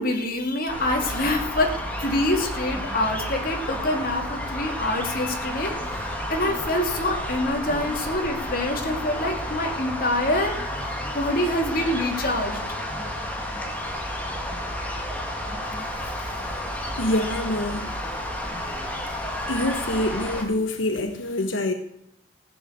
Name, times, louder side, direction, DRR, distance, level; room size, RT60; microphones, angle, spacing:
voice 1, 0.0-1.7 2.0-12.6, left 1 dB, 50° left, 2 dB, 2.5 m, -26 dB
sound 1, 0.7-20.4, left 1 dB, 10° left, 2.0 m, -31 dB
voice 2, 17.0-18.0 19.5-21.7, left 1 dB, 90° left, 6 dB, 1.2 m, -26 dB
15.0 x 7.2 x 8.1 m, 0.76 s
head